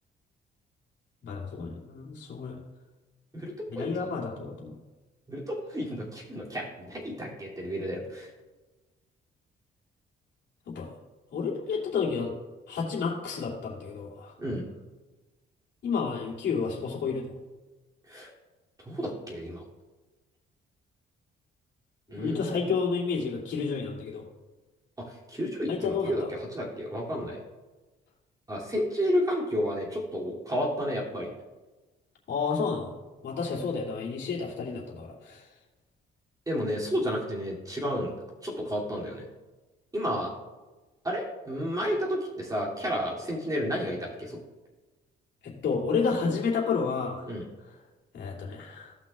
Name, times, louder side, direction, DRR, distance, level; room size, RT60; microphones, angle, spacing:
voice 1, 1.2-2.6 3.7-4.8 10.7-10.9 11.3-12.3 12.7-14.3 15.8-17.3 22.2-24.3 25.7-26.3 32.3-33.0 33.2-35.5 45.4-47.3 47.7-47.8 48.1-48.9, left 5 dB, 65° left, -4 dB, 2.8 m, -30 dB
voice 2, 3.3-4.1 5.3-8.3 14.4-14.6 18.1-18.3 18.8-19.6 22.1-22.5 25.0-27.4 28.5-31.3 36.5-38.1 38.4-39.2 39.9-40.3 41.0-44.4 47.3-47.4, equal, 20° right, -3 dB, 2.8 m, -31 dB
17.0 x 5.9 x 2.4 m, 1.2 s
cardioid pair, 90°, 20 cm